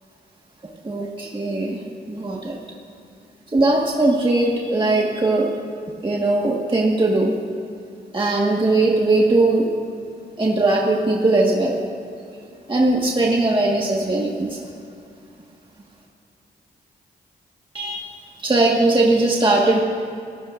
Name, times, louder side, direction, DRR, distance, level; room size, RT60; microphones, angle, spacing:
voice 1, 0.8-1.8 2.1-2.6 3.5-5.5 6.0-7.4 8.1-9.7 10.4-11.8 12.7-14.7 17.7-18.0 18.4-19.8, right 2 dB, 25° right, -2 dB, 1.6 m, -19 dB
27.5 x 16.0 x 2.6 m, 2.5 s
cardioid pair, 75°, 19 cm